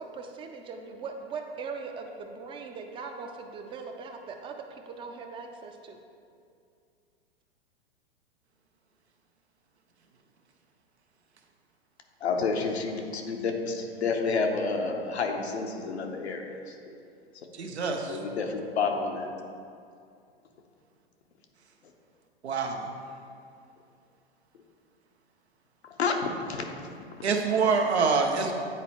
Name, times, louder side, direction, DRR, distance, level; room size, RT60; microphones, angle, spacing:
voice 1, 0.0-6.0, right 4 dB, 15° right, 4 dB, 0.4 m, -40 dB
voice 2, 12.2-17.0 18.1-19.4 25.8-26.2 26.5-27.0, left 4 dB, 85° left, 3 dB, 0.9 m, -30 dB
voice 3, 17.6-18.2 22.4-22.9 27.2-28.5, right 5 dB, 90° right, 3 dB, 0.9 m, -25 dB
9.6 x 4.2 x 3.0 m, 2.4 s
hypercardioid pair, 115°, 32 cm